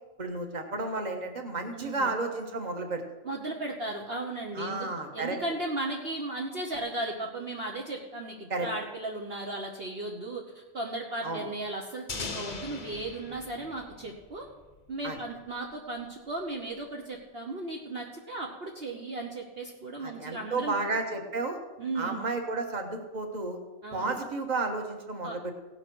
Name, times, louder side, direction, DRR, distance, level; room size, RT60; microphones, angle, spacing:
voice 1, 0.2-3.0 4.5-5.4 8.5-8.7 11.2-11.4 15.0-15.2 20.0-21.6 21.9-23.6 23.9-25.5, right 3 dB, 30° right, 3 dB, 1.5 m, -32 dB
voice 2, 1.7-2.1 3.2-4.9 5.1-14.5 14.9-20.8 21.8-22.2 23.8-24.2 25.2-25.4, right 2 dB, 45° right, -1 dB, 1.3 m, -36 dB
sound 1, 12.1-14.9, left 4 dB, 35° left, 0.9 m, -40 dB
17.0 x 5.9 x 6.2 m, 1.2 s
omnidirectional pair, 1.5 m